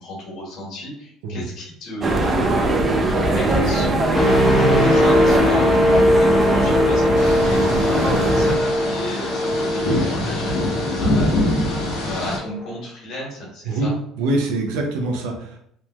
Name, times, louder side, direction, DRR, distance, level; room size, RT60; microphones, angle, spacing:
voice 1, 0.0-4.0 4.5-13.9, equal, 60° left, -4 dB, 1.5 m, -34 dB
sound 1, 2.0-8.6, right 2 dB, 30° right, 0.5 m, -21 dB
sound 2, 4.1-12.0 12.4-12.7, left 1 dB, 20° left, 0.7 m, -20 dB
sound 3, 7.2-12.4, left 1 dB, 85° left, 1.2 m, -24 dB
voice 2, 14.2-15.6, right 2 dB, 85° right, 2 dB, 0.6 m, -24 dB
3.2 x 2.1 x 2.9 m, 0.68 s
cardioid pair, 105°, 0 cm